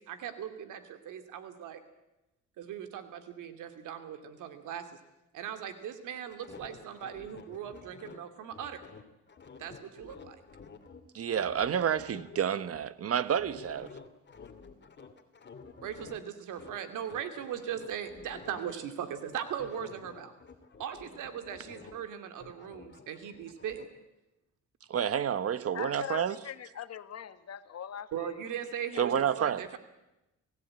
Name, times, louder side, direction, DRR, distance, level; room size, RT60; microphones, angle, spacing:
voice 1, 0.0-1.8 2.6-4.8 5.3-8.8 9.6-10.4 15.8-20.3 20.8-23.9 28.1-29.8, right 9 dB, 85° right, 2.6 m, -39 dB
sound 1, 6.1-11.0 11.3-16.2 16.5-18.7 19.1-22.1 22.3-23.9, left 5 dB, 35° left, 2.6 m, -51 dB
voice 2, 11.1-13.9 24.9-26.4 29.0-29.7, right 8 dB, 50° right, 1.2 m, -29 dB
voice 3, 25.7-28.5 28.9-29.5, left 9 dB, 55° left, 1.5 m, -42 dB
26.0 x 16.0 x 8.9 m
cardioid pair, 90°, 30 cm